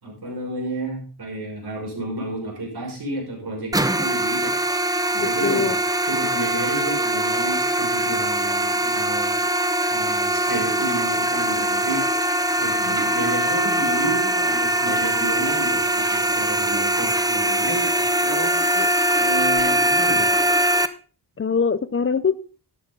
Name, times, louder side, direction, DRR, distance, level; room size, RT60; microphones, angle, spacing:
voice 1, 0.0-4.5 5.2-9.4 9.9-12.0 12.6-18.5 19.2-20.4, right 2 dB, 70° right, 0 dB, 6.0 m, -31 dB
sound 1, 3.7-20.9, right 1 dB, 10° right, 0.7 m, -22 dB
voice 2, 5.1-5.7 12.8-13.0 18.8-18.9 21.4-22.3, left 6 dB, 35° left, 15 dB, 0.5 m, -23 dB
12.0 x 10.0 x 3.8 m, 0.37 s
wide cardioid pair, 95°, 40 cm